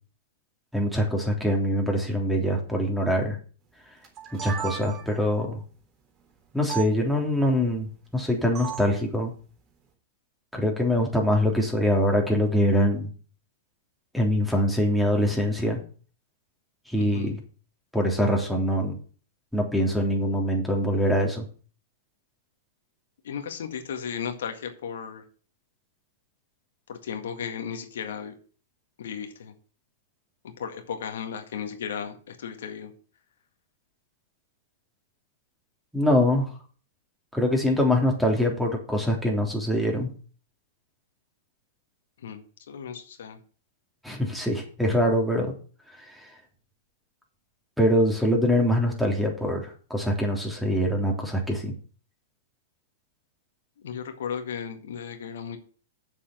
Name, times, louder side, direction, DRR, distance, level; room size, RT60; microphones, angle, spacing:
voice 1, 0.7-3.3 4.4-5.6 6.5-9.3 10.5-13.1 14.1-15.8 16.9-17.4 17.9-19.0 19.5-21.4 35.9-36.5 37.3-40.1 44.0-45.5 47.8-51.7, equal, ahead, 1 dB, 3.3 m, -24 dB
sound 1, 4.0-5.3 6.7-6.9 8.5-9.0, right 9 dB, 35° right, 3.5 m, -35 dB
voice 2, 17.0-17.4 23.2-25.2 26.9-28.3 29.0-29.5 30.4-32.9 42.2-43.4 53.8-55.6, left 7 dB, 70° left, 5 dB, 1.8 m, -35 dB
7.3 x 7.0 x 7.8 m, 0.41 s
hypercardioid pair, 110°, 0 cm